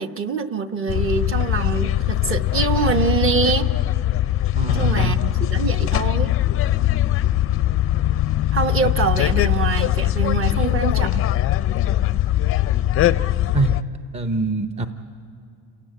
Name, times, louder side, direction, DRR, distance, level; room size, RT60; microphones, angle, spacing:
voice 1, 0.0-3.7 4.7-6.3 8.5-11.2, right 5 dB, 35° right, 7 dB, 1.0 m, -24 dB
sound 1, 0.9-13.8, left 13 dB, 35° left, 0.5 m, -21 dB
voice 2, 4.5-5.2 13.5-13.8 14.1-14.9, right 3 dB, 15° right, 7 dB, 0.7 m, -23 dB
28.5 x 17.0 x 8.9 m, 2.6 s
cardioid pair, 140°, 39 cm